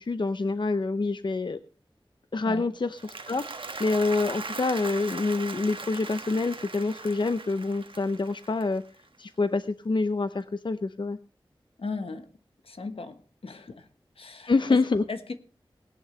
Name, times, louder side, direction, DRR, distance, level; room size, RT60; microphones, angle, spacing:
voice 1, 0.0-1.6 2.3-3.0 3.3-8.8 9.2-11.2 14.5-15.0, left 3 dB, 55° left, 11 dB, 0.7 m, -27 dB
Applause, 2.8-9.2, right 3 dB, 70° right, 1.3 m, -39 dB
voice 2, 11.8-12.3 12.6-13.9 14.2-14.8 15.1-15.3, left 4 dB, 85° left, 8 dB, 1.3 m, -37 dB
19.0 x 10.5 x 3.3 m, 0.34 s
wide cardioid pair, 65°, 9 cm